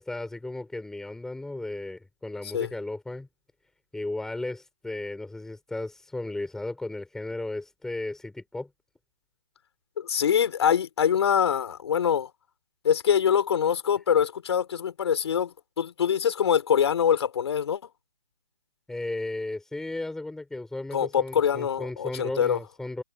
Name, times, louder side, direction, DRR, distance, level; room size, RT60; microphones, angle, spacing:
voice 1, 0.0-3.3 3.9-8.7 18.9-23.0, left 2 dB, 5° left, 6.8 m, -35 dB
voice 2, 10.0-12.3 12.8-17.8 20.9-22.6, left 8 dB, 50° left, 6.5 m, -24 dB
hypercardioid pair, 150°, 18 cm